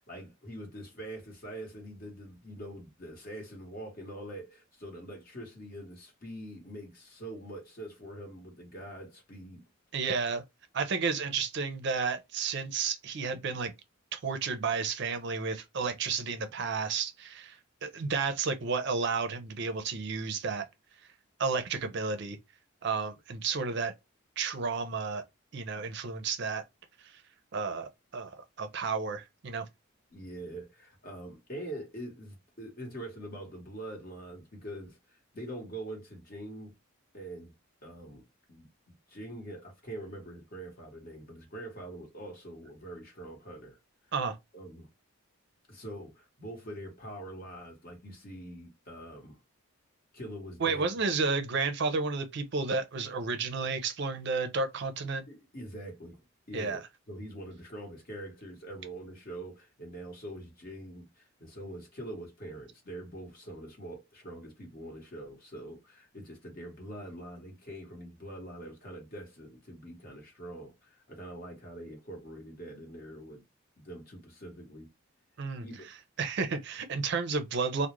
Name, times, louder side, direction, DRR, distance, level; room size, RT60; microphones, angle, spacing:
voice 1, 0.1-9.6 30.1-36.8 37.1-37.5 37.8-38.7 39.1-43.8 44.5-44.9 45.7-49.4 50.1-50.8 55.0-56.8 57.1-73.4 73.8-74.9 75.6-75.9, right 1 dB, 40° left, 1.0 m, -44 dB
voice 2, 9.9-10.4 10.7-13.7 14.1-17.6 17.8-20.6 21.4-22.4 22.8-23.9 24.4-25.2 25.5-26.6 27.5-29.6 44.1-44.4 50.6-55.3 56.5-56.8 75.4-75.6 76.2-77.9, right 4 dB, 50° right, 0.4 m, -32 dB
2.3 x 2.0 x 2.9 m
head